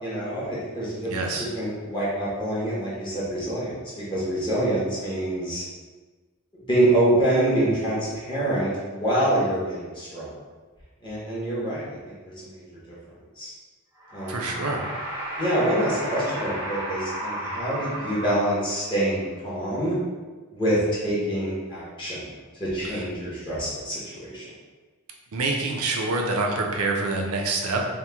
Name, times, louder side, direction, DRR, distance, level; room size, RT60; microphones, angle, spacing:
voice 1, 0.0-1.3 1.5-3.8 4.1-5.6 6.7-10.3 11.0-12.6 13.4-13.5 14.1-14.5 15.4-20.0 20.5-22.2 22.6-24.4, right 1 dB, 20° left, -9 dB, 0.7 m, -26 dB
voice 2, 1.1-1.5 14.3-14.8 22.8-23.0 25.3-27.9, right 3 dB, 80° right, 1 dB, 0.5 m, -26 dB
sound 1, 14.0-19.0, right 1 dB, 15° right, 0.6 m, -33 dB
2.9 x 2.1 x 3.3 m, 1.3 s
head